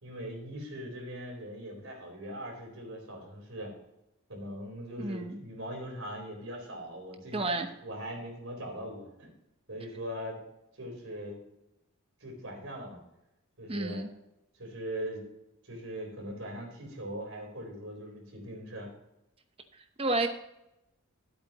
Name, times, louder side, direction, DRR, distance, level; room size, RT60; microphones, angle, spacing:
voice 1, 0.0-3.7 4.3-7.5 7.8-9.3 9.7-10.4 10.8-11.4 12.2-13.0 13.6-14.0 14.6-15.2 15.6-18.9, equal, 70° right, 0 dB, 4.1 m, -40 dB
voice 2, 5.0-5.4 7.3-7.7 13.7-14.1 20.0-20.3, right 2 dB, 25° right, 7 dB, 0.9 m, -30 dB
14.0 x 8.2 x 3.0 m, 0.89 s
head